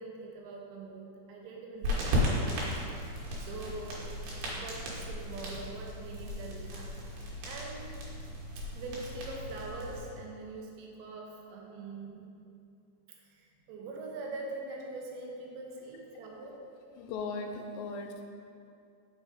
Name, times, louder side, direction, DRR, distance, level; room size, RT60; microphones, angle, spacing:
voice 1, 0.0-2.6 3.4-4.1 4.5-6.9 7.5-7.9 8.6-12.3 13.4-16.6, right 3 dB, 80° right, -1 dB, 1.9 m, -43 dB
sound 1, 1.8-10.0, equal, 65° right, 2.7 m, -35 dB
voice 2, 17.0-18.2, left 3 dB, 85° left, 4 dB, 2.6 m, -37 dB
6.2 x 4.0 x 4.8 m, 2.5 s
omnidirectional pair, 4.7 m